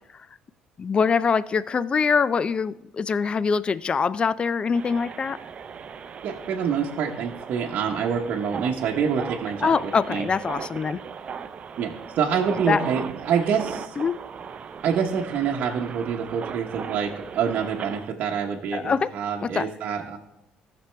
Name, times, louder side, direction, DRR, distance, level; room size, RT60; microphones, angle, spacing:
voice 1, 0.8-5.4 9.6-11.0 12.7-12.8 14.0-14.2 18.7-19.1 19.5-19.7, left 5 dB, 35° left, 17 dB, 0.3 m, -23 dB
sound 1, 4.7-18.1, right 6 dB, 45° right, 0.5 m, -38 dB
voice 2, 6.2-10.3 11.8-14.0 14.8-20.2, right 7 dB, 65° right, 0 dB, 0.9 m, -26 dB
14.5 x 6.0 x 3.4 m, 0.87 s
supercardioid pair, 75°, 3 cm